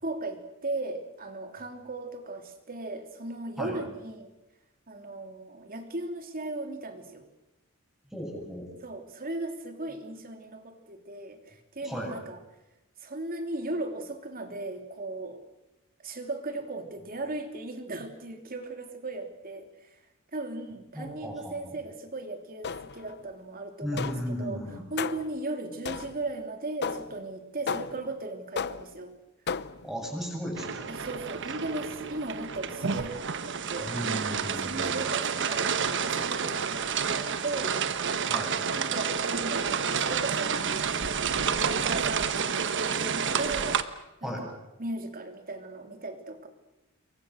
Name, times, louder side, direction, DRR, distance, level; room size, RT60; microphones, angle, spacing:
voice 1, 0.0-4.3 4.9-7.3 8.8-12.4 13.0-15.4 16.0-19.9 20.3-24.6 24.9-29.1 30.9-33.9 34.5-37.8 38.8-46.5, right 2 dB, 45° right, 5 dB, 3.2 m, -37 dB
voice 2, 8.1-8.7 11.8-12.1 20.9-21.8 23.8-24.8 29.8-30.9 33.8-35.0 38.3-38.5 44.2-44.5, equal, ahead, 0 dB, 8.0 m, -35 dB
sound 1, 22.6-23.1 24.0-24.4 25.0-25.4 25.8-26.3 26.8-27.2 27.7-28.1 28.6-29.0 29.5-29.9, left 5 dB, 50° left, 0.8 m, -34 dB
sound 2, 30.5-43.8, right 6 dB, 60° right, 1.3 m, -29 dB
28.0 x 23.0 x 6.5 m, 0.95 s
head